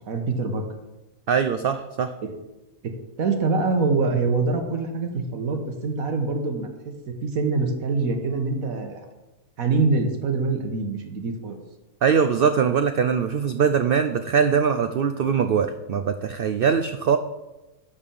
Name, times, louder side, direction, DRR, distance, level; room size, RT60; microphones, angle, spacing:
voice 1, 0.1-0.6 2.2-2.3 2.8-9.0 9.6-11.6, right 3 dB, 70° right, 4 dB, 1.6 m, -25 dB
voice 2, 1.3-2.1 12.0-17.2, right 6 dB, 85° right, 9 dB, 0.5 m, -22 dB
11.0 x 4.3 x 7.0 m, 1.0 s
omnidirectional pair, 1.5 m